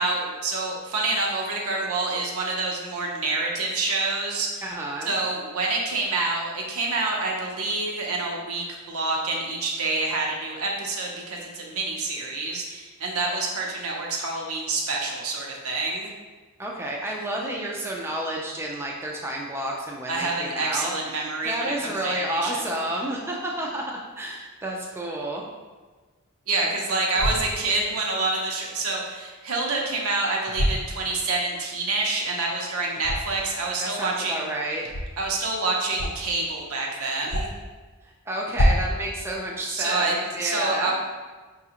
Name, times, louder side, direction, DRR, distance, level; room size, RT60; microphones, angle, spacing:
voice 1, 0.0-4.6 5.0-16.1 20.1-22.8 26.5-34.5 35.2-37.5 39.7-41.0, right 3 dB, 80° right, -1 dB, 0.7 m, -27 dB
voice 2, 4.6-5.1 16.6-25.4 33.8-34.9 38.3-40.9, right 1 dB, 10° right, -2 dB, 0.3 m, -30 dB
sound 1, 27.1-27.5 30.5-30.8 33.0-33.4 34.8-35.1 35.9-36.3 36.6-36.7 37.2-37.7 38.5-39.0, equal, 55° left, 0.6 m, -24 dB
4.9 x 2.4 x 2.8 m, 1.3 s
head